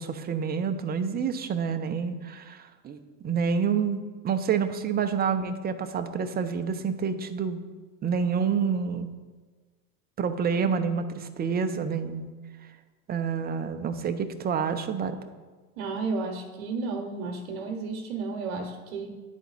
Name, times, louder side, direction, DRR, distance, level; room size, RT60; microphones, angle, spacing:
voice 1, 0.0-3.0 3.2-7.6 8.0-9.1 10.2-12.3 13.1-15.2, right 6 dB, 25° right, 9 dB, 0.5 m, -28 dB
voice 2, 15.8-19.2, right 4 dB, 80° right, 3 dB, 1.0 m, -32 dB
10.0 x 4.1 x 4.0 m, 1.4 s
hypercardioid pair, 90°, 43 cm